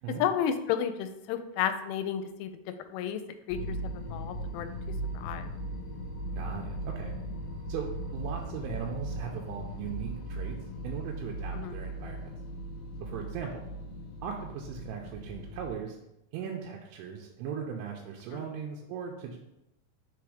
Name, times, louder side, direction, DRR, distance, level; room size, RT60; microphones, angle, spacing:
voice 1, 0.2-2.5 2.9-3.2 3.5-4.7 5.1-5.5 11.5-11.7, left 9 dB, 85° left, 9 dB, 3.0 m, -32 dB
sound 1, 3.5-15.7, right 1 dB, 65° left, 2.4 m, -38 dB
voice 2, 6.4-7.2 7.7-10.6 10.8-12.3 13.0-13.7 14.2-16.0 16.3-19.4, right 7 dB, 85° right, 0 dB, 2.9 m, -38 dB
7.0 x 3.4 x 4.9 m, 0.86 s
omnidirectional pair, 5.7 m